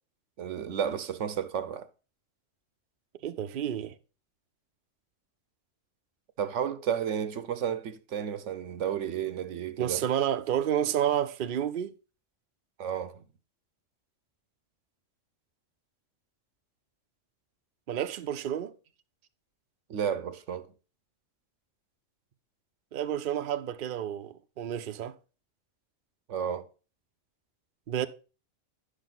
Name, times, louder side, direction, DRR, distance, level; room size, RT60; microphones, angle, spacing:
voice 1, 0.4-1.9 6.4-10.1 12.8-13.2 19.9-20.7 26.3-26.7, right 8 dB, 75° right, 1.0 m, -32 dB
voice 2, 3.2-3.9 9.8-11.9 17.9-18.7 22.9-25.1 27.9-28.1, right 10 dB, 55° right, 0.6 m, -30 dB
9.9 x 6.3 x 3.9 m
omnidirectional pair, 1.3 m